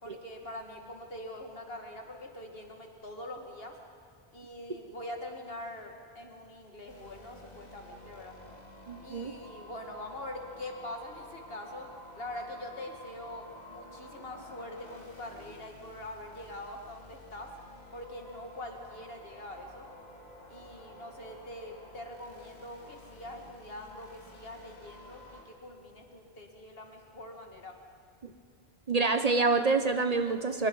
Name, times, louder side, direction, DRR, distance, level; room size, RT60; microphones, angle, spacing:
voice 1, 0.0-3.8 4.3-8.4 9.0-11.9 12.2-17.5 17.9-19.9 20.5-27.8, left 1 dB, 70° left, 3 dB, 2.4 m, -44 dB
sound 1, 6.9-25.4, left 1 dB, 45° left, 2.7 m, -51 dB
voice 2, 8.9-9.4 28.2-28.3 28.9-30.7, right 3 dB, 40° right, 8 dB, 0.8 m, -27 dB
24.5 x 21.5 x 5.5 m, 2.1 s
omnidirectional pair, 1.0 m